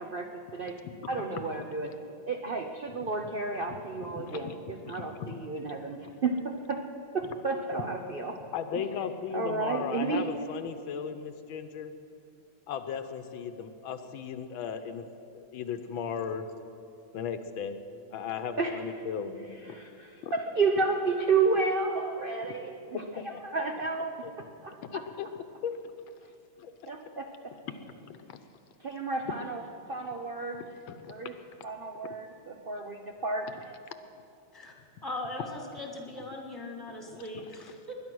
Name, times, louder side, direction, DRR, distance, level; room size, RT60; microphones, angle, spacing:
voice 1, 0.0-0.8 1.1-1.9 2.3-6.8 7.1-8.4 8.7-8.8 9.3-10.3 18.6-18.8 19.5-22.7 23.1-24.1 24.6-25.0 26.9-27.3 28.8-29.6 29.9-30.6 31.1-31.3 31.6-33.5, right 4 dB, 65° right, 4 dB, 0.5 m, -31 dB
voice 2, 0.8-1.2 3.7-4.5 4.8-5.0 8.5-11.9 12.7-15.0 15.3-16.4 17.1-17.8 18.1-19.8 20.2-20.3 22.9-23.4 24.2-24.3 24.9-25.3 25.6-25.7 26.6-26.7 27.7-28.4 30.9-31.1 37.1-37.5, left 7 dB, 80° left, 9 dB, 1.6 m, -37 dB
voice 3, 35.0-37.9, left 1 dB, 10° left, 0 dB, 2.1 m, -39 dB
21.0 x 10.5 x 6.2 m, 2.6 s
omnidirectional pair, 2.2 m